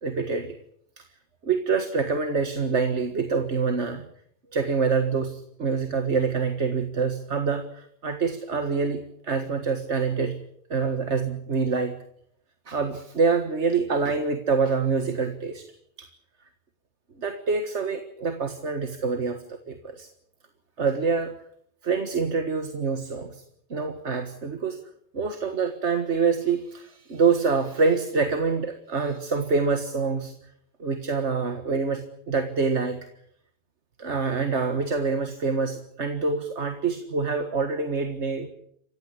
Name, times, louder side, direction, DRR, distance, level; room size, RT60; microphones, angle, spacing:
voice 1, 0.0-0.5 1.0-1.1 1.4-4.1 4.5-10.4 10.7-12.0 12.7-15.7 16.0-16.1 17.2-20.1 20.8-21.3 21.8-23.4 23.7-24.8 25.1-30.3 30.8-33.1 34.0-38.5, right 4 dB, 85° right, 7 dB, 2.0 m, -26 dB
28.0 x 16.0 x 8.6 m, 0.69 s
omnidirectional pair, 1.1 m